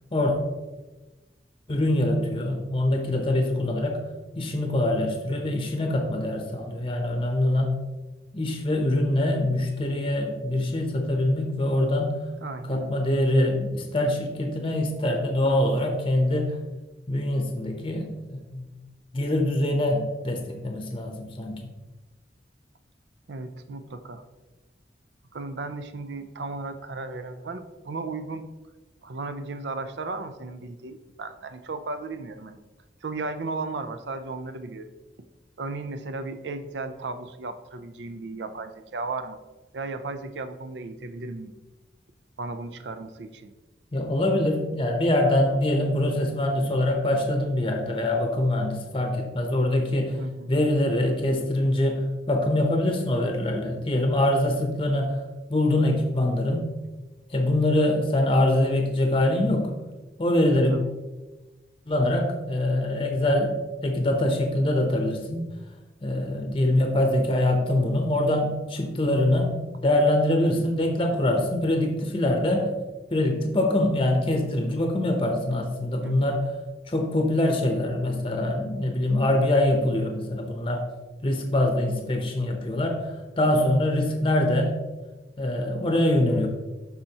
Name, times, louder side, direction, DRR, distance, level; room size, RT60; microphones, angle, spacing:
voice 1, 1.7-4.0 4.4-7.7 8.3-12.2 12.7-16.6 17.1-18.7 19.1-21.6 43.9-50.2 50.5-55.2 55.5-56.7 57.3-59.7 60.2-60.8 61.9-65.5 66.0-69.5 69.8-72.7 73.1-76.5 76.9-80.8 81.2-84.8 85.4-86.5, left 1 dB, 30° left, 3 dB, 0.8 m, -24 dB
voice 2, 12.4-12.9 23.3-24.2 25.3-28.5 29.0-32.6 33.0-34.9 35.6-39.4 39.7-41.5 42.4-43.6 50.2-50.5 60.7-60.8 76.0-76.3 86.3-86.5, right 3 dB, 80° right, 10 dB, 0.5 m, -35 dB
12.0 x 4.1 x 2.9 m, 1.2 s
head